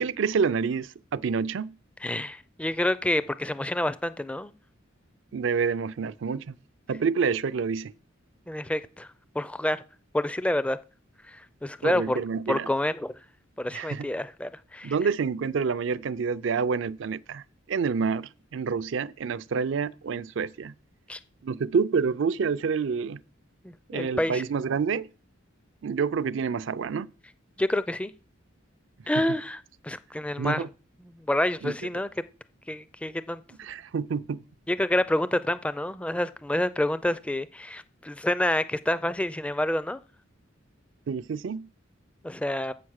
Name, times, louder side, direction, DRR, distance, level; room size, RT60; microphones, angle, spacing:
voice 1, 0.0-1.8 5.3-6.6 6.9-7.9 11.8-12.7 13.7-14.1 14.8-17.4 17.7-20.7 21.4-23.2 23.9-25.1 25.8-27.1 30.4-30.7 31.6-31.7 33.6-34.4 41.1-41.7, right 5 dB, 65° right, 0.4 m, -28 dB
voice 2, 2.0-4.5 8.5-9.1 9.4-9.8 10.1-10.8 11.3-12.2 12.5-13.1 13.6-14.9 21.1-21.2 23.6-24.4 27.6-28.1 29.1-30.6 31.1-32.1 32.7-33.4 34.7-40.0 42.2-42.7, left 1 dB, 5° left, 0.4 m, -28 dB
7.8 x 5.9 x 6.4 m
head